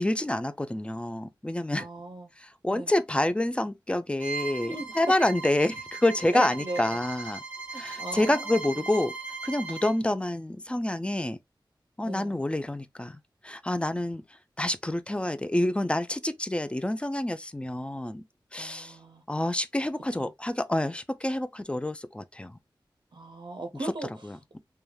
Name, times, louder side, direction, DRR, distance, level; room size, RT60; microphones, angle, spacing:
voice 1, 0.0-1.9 2.4-7.4 7.7-9.1 9.4-11.4 12.0-14.2 14.6-18.2 18.5-19.0 19.3-22.6 23.8-23.9 24.2-24.6, left 1 dB, 15° left, 0.3 m, -28 dB
voice 2, 1.8-2.3 2.7-2.9 4.6-4.9 6.3-7.0 7.7-8.8 12.0-12.4 18.6-19.2 20.2-20.3 23.1-24.3, right 2 dB, 60° right, 0.5 m, -38 dB
Bowed string instrument, 4.2-10.0, right 4 dB, 20° right, 1.0 m, -38 dB
3.1 x 2.2 x 2.2 m
wide cardioid pair, 50°, 8 cm